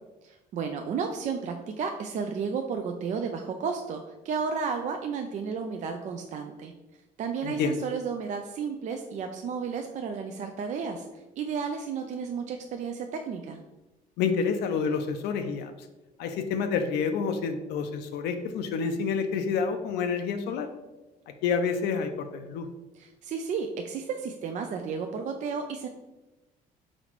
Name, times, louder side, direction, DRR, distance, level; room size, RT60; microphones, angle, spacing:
voice 1, 0.2-6.7 7.2-13.6 22.9-25.9, right 6 dB, 45° right, 5 dB, 0.4 m, -33 dB
voice 2, 7.4-7.8 14.2-15.7 16.2-20.7 21.4-22.7, left 5 dB, 80° left, 7 dB, 0.4 m, -28 dB
4.1 x 4.0 x 3.0 m, 1.1 s
cardioid pair, 110°, 17 cm